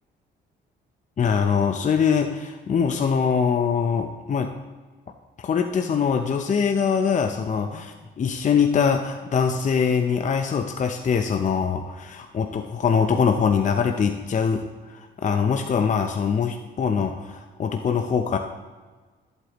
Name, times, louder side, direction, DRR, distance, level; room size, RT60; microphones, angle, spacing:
voice 1, 1.2-4.5 5.4-18.4, left 6 dB, 40° left, 5 dB, 0.6 m, -23 dB
13.0 x 8.2 x 3.0 m, 1.4 s
cardioid pair, 90°, 20 cm